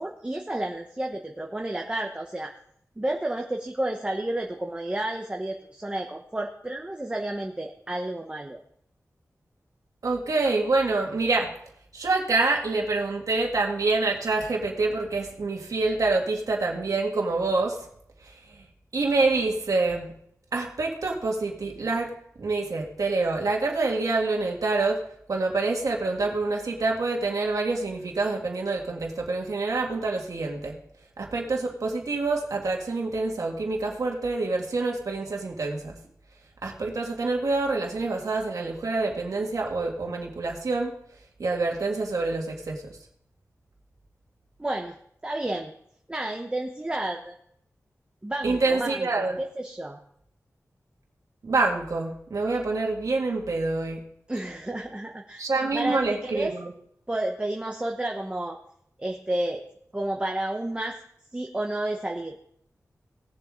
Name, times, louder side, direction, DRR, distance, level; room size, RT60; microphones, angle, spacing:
voice 1, 0.0-2.5 3.0-8.6 44.6-45.0 45.2-45.7 46.1-47.3 48.2-50.0 54.3-55.5 55.7-56.5 57.1-58.6 59.0-59.6 59.9-61.0 61.3-62.4, right 1 dB, 20° right, 2 dB, 1.0 m, -31 dB
voice 2, 10.0-11.5 11.9-17.8 18.2-18.7 18.9-20.1 20.5-22.1 22.4-25.0 25.3-30.7 31.2-36.0 36.6-40.9 41.4-43.0 48.4-49.4 51.4-54.0 55.4-56.7, right 3 dB, 75° right, 0 dB, 2.0 m, -26 dB
18.5 x 7.4 x 3.7 m, 0.68 s
wide cardioid pair, 100°, 6 cm